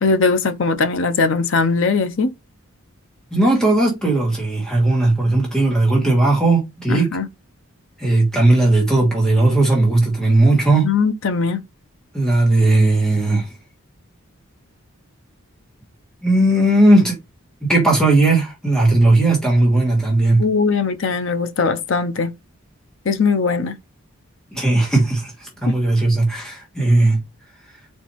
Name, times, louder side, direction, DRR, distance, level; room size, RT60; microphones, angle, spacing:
voice 1, 0.0-2.3 6.9-7.3 10.8-11.6 20.4-22.3 23.1-23.8, left 4 dB, 55° left, 0.6 m, -20 dB
voice 2, 3.3-7.1 8.0-10.9 12.1-13.5 16.2-17.2 17.6-20.4 24.5-27.2, right 2 dB, 5° left, 1.4 m, -16 dB
4.3 x 4.1 x 3.0 m
head